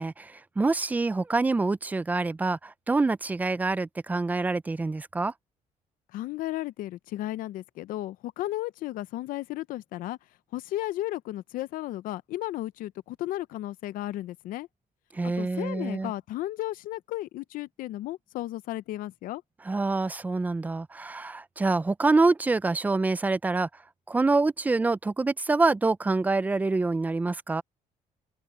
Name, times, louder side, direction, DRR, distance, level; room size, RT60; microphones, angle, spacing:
voice 1, 0.0-5.3 15.1-16.1 19.6-23.7 24.1-27.6, right 3 dB, 10° right, 0.3 m, -26 dB
voice 2, 6.1-10.2 10.5-14.7 15.2-19.4, left 15 dB, 80° left, 0.5 m, -34 dB
cardioid pair, 150°, 14 cm